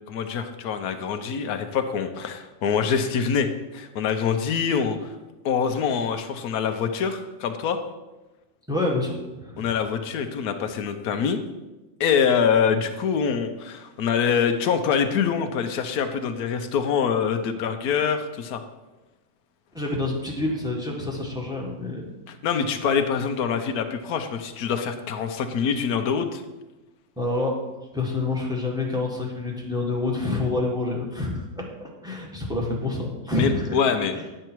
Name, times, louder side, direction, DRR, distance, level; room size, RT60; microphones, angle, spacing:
voice 1, 0.1-5.1 5.4-7.8 9.6-11.4 12.0-18.6 22.3-26.4 33.4-34.2, left 6 dB, 85° left, 6 dB, 1.2 m, -25 dB
voice 2, 8.7-9.7 19.7-22.0 27.2-27.5 27.9-33.8, left 2 dB, 5° right, -2 dB, 1.6 m, -27 dB
10.0 x 6.5 x 4.5 m, 1.1 s
omnidirectional pair, 1.6 m